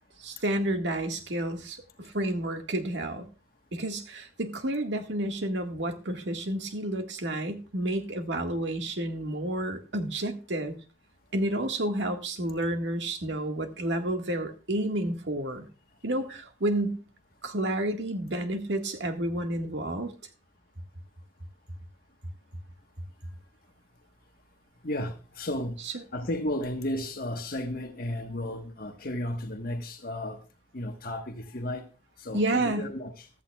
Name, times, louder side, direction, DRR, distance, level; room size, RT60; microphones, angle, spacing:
voice 1, 0.2-3.3 3.7-10.8 11.3-15.7 16.0-17.0 17.4-20.1 25.8-25.9 32.3-32.9, right 1 dB, 85° right, 1.8 m, -30 dB
voice 2, 24.8-25.8 26.1-30.4 30.7-31.9 32.2-33.3, left 1 dB, 55° left, 1.4 m, -33 dB
15.0 x 13.0 x 2.4 m
head